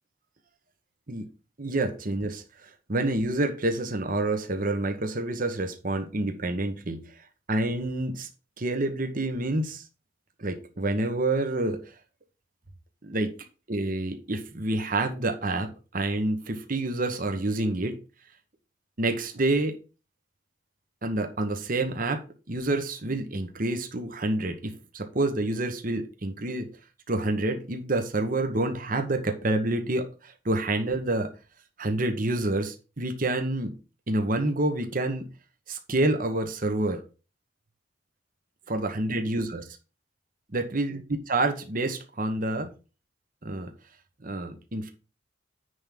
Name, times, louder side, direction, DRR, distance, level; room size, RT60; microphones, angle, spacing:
voice 1, 1.6-7.0 7.5-8.3 8.6-9.8 10.4-11.8 13.0-13.3 13.7-18.0 19.0-19.8 21.0-26.7 27.1-31.3 31.8-33.7 34.1-35.2 35.7-37.0 38.7-39.6 40.5-41.0 41.3-42.7 43.4-43.7 44.2-44.9, right 2 dB, 45° right, 6 dB, 1.1 m, -28 dB
9.7 x 3.6 x 5.8 m, 0.33 s
head